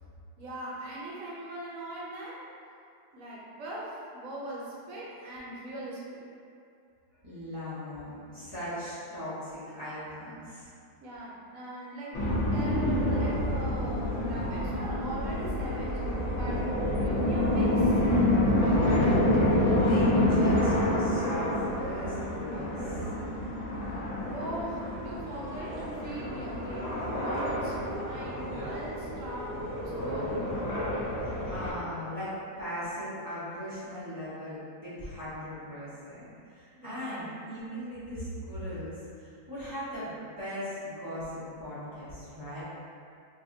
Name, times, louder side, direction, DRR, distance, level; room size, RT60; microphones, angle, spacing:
voice 1, 0.4-2.5 3.1-6.2 11.0-16.0 16.3-16.6 17.0-18.0 24.3-30.5 36.8-37.3, right 1 dB, 60° right, -6 dB, 1.0 m, -41 dB
voice 2, 7.2-10.7 19.0-23.0 31.2-42.6, equal, 20° right, -13 dB, 0.5 m, -39 dB
sound 1, 12.1-31.7, left 1 dB, 55° left, 0.9 m, -28 dB
2.7 x 2.5 x 3.6 m, 2.4 s
omnidirectional pair, 1.7 m